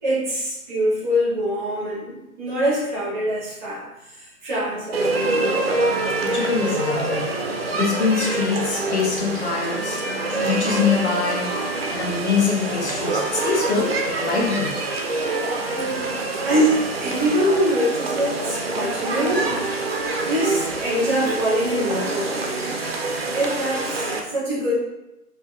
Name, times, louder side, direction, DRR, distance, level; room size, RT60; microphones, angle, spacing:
voice 1, 0.0-5.5 15.7-16.1 16.4-19.4 20.2-22.4 23.3-24.8, equal, 5° left, -8 dB, 0.6 m, -24 dB
sound 1, 4.9-24.2, right 2 dB, 45° right, 0.4 m, -26 dB
voice 2, 6.2-7.3 7.7-10.0 10.4-11.6 11.9-14.8, left 5 dB, 45° left, -1 dB, 0.8 m, -24 dB
4.4 x 2.2 x 3.4 m, 0.95 s
figure-of-eight pair, 140°, 47 cm